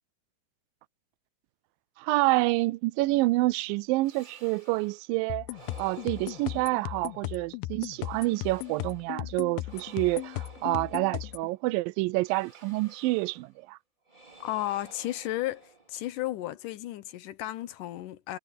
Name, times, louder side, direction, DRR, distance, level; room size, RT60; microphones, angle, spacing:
voice 1, 2.0-5.5 5.8-13.8, right 21 dB, 80° right, 2.3 m, -28 dB
sound 1, 4.0-5.1 5.5-7.5 7.9-9.2 9.6-11.6 12.2-13.6 14.1-16.2, right 3 dB, 15° right, 3.6 m, -54 dB
sound 2, 5.3-11.5, left 17 dB, 90° left, 2.4 m, -37 dB
voice 2, 14.4-18.4, left 15 dB, 70° left, 2.3 m, -34 dB
omnidirectional pair, 4.1 m